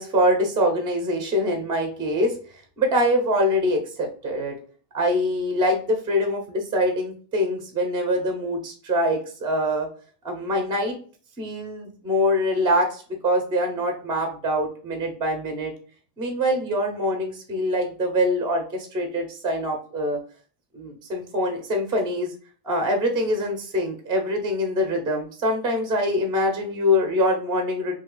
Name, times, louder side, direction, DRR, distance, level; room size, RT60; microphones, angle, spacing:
voice 1, 0.0-2.3 2.8-4.5 4.9-9.9 10.2-11.0 11.4-15.7 16.2-20.2 20.7-22.3 22.6-28.0, equal, 10° right, 3 dB, 0.4 m, -24 dB
2.8 x 2.3 x 3.7 m, 0.42 s
supercardioid pair, 145°, 49 cm